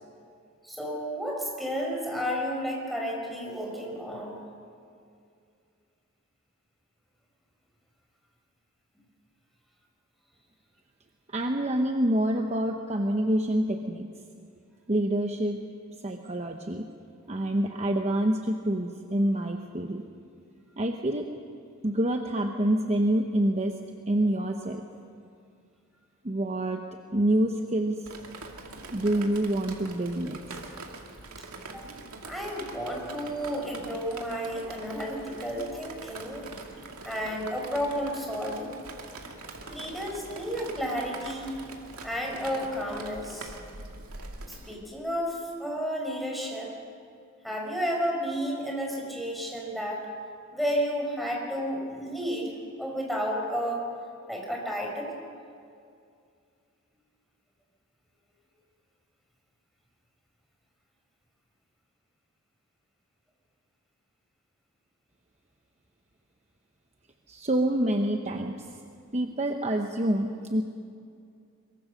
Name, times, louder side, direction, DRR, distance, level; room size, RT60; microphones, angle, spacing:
voice 1, 0.6-4.4 31.7-31.8 32.3-36.5 37.0-38.7 39.7-41.5 42.0-43.6 44.4-46.7 47.4-50.1 50.5-52.5 52.8-53.9 54.3-55.1, equal, ahead, -1 dB, 4.7 m, -32 dB
voice 2, 11.3-14.1 14.9-15.6 16.0-16.8 17.3-20.0 20.8-21.3 21.8-23.8 24.1-24.8 26.2-26.8 27.1-28.0 28.9-30.6 67.3-68.7 69.1-70.6, right 1 dB, 30° right, 3 dB, 1.0 m, -27 dB
Drip, 28.1-44.8, right 3 dB, 75° right, 2.5 m, -43 dB
23.0 x 23.0 x 6.6 m, 2.4 s
head